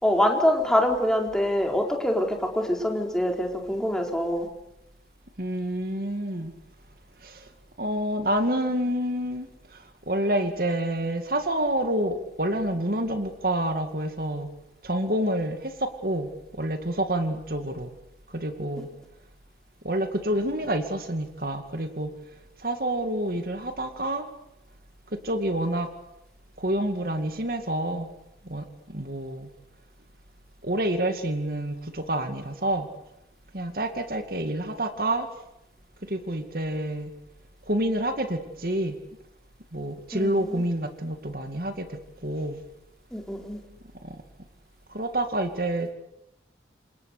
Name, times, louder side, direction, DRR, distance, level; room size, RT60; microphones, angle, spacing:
voice 1, 0.0-4.5 40.1-40.6 43.1-43.6, left 1 dB, 5° left, 2 dB, 4.2 m, -25 dB
voice 2, 5.4-6.5 7.2-7.5 7.8-14.5 14.8-17.9 18.3-18.9 19.8-22.1 22.6-24.3 25.1-25.9 26.6-28.1 28.4-29.5 30.6-32.9 33.5-35.3 36.1-37.1 37.7-39.0 39.7-42.6 44.0-44.2 44.9-45.9, right 1 dB, 55° right, 7 dB, 2.3 m, -28 dB
29.0 x 26.5 x 6.8 m, 0.86 s
head